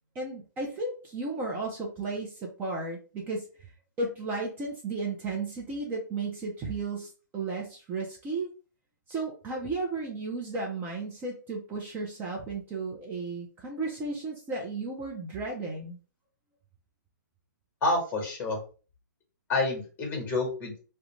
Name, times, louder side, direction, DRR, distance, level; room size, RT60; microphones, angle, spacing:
voice 1, 0.2-3.4 4.0-8.5 9.1-16.0, right 3 dB, 20° right, -1 dB, 0.5 m, -34 dB
voice 2, 17.8-18.6 19.5-20.8, left 2 dB, 20° left, 2 dB, 1.2 m, -28 dB
2.4 x 2.2 x 2.9 m, 0.37 s
hypercardioid pair, 140°, 10 cm